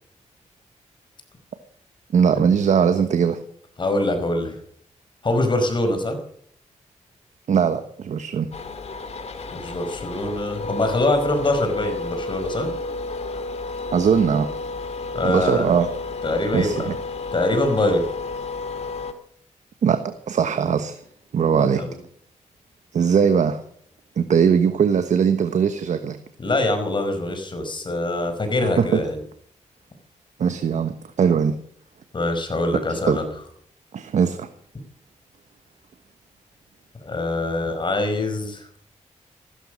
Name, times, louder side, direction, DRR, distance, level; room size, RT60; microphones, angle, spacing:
voice 1, 2.1-3.4 7.5-8.5 13.9-14.5 15.2-15.9 16.5-17.0 19.8-21.0 21.3-21.8 22.9-23.6 24.2-26.2 28.8-29.0 30.4-31.6 32.9-33.2 33.9-34.5, right 7 dB, 70° right, 9 dB, 1.2 m, -20 dB
voice 2, 3.8-4.5 5.2-6.2 9.5-12.7 15.1-15.7 16.2-16.9 17.3-18.0 21.6-22.0 26.4-29.2 32.1-33.3 37.0-38.7, left 2 dB, 40° left, 7 dB, 5.0 m, -24 dB
sound 1, 8.5-19.1, left 3 dB, 55° left, 2.3 m, -31 dB
15.5 x 13.5 x 6.4 m, 0.62 s
cardioid pair, 90°, 13 cm